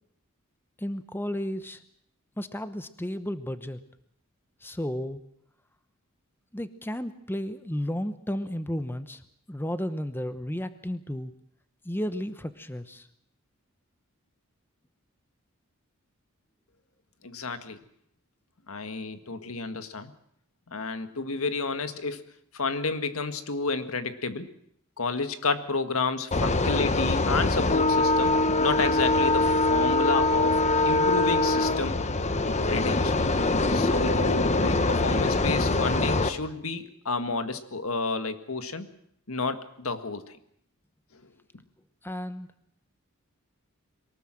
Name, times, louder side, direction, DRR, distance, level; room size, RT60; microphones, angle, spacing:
voice 1, 0.8-1.8 2.4-3.8 4.6-5.2 6.5-9.2 9.5-11.3 11.8-13.1 42.0-42.5, equal, 10° left, 11 dB, 0.9 m, -33 dB
voice 2, 17.2-17.8 18.7-20.1 20.7-22.3 22.5-24.5 25.0-32.0 32.7-33.2 33.7-38.9 39.3-40.2 41.1-41.2, left 4 dB, 70° left, 10 dB, 1.7 m, -30 dB
sound 1, 26.3-36.3, left 2 dB, 30° left, 1.2 m, -23 dB
23.0 x 19.5 x 7.6 m, 0.70 s
head